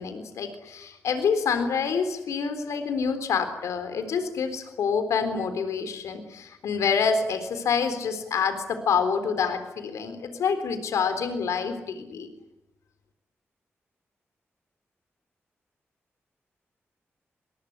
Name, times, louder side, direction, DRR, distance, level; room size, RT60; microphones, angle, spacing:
voice 1, 0.0-12.3, left 6 dB, 85° left, 9 dB, 3.8 m, -27 dB
25.5 x 21.0 x 9.9 m, 0.88 s
supercardioid pair, 45°, 5 cm